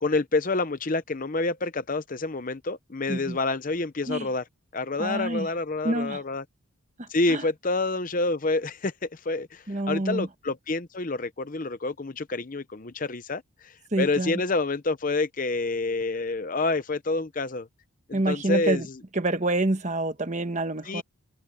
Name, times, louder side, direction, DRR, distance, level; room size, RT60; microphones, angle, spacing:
voice 1, 0.0-4.4 4.7-6.4 7.1-17.7 18.1-18.8 20.9-21.0, left 3 dB, 40° left, 0.7 m, -28 dB
voice 2, 5.0-5.5 5.8-6.2 7.0-7.4 9.7-10.3 13.9-14.4 18.1-18.9 19.1-21.0, right 2 dB, 35° right, 1.2 m, -27 dB
head